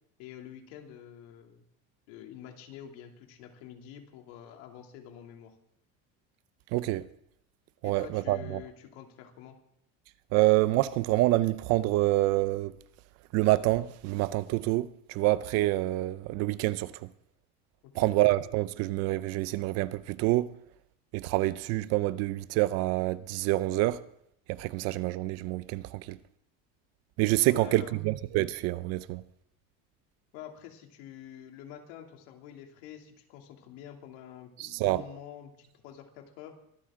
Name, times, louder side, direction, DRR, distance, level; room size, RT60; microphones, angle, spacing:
voice 1, 0.2-1.6 2.1-5.6 7.8-9.6 17.8-18.1 27.5-28.0 30.3-36.6, left 10 dB, 85° left, 2.8 m, -47 dB
voice 2, 6.7-7.1 7.8-8.6 10.3-12.7 13.3-17.1 17.9-20.5 21.1-24.0 24.5-26.2 27.2-29.2 34.6-35.0, right 17 dB, 50° right, 0.6 m, -27 dB
23.0 x 13.0 x 3.7 m
cardioid pair, 170°, 32 cm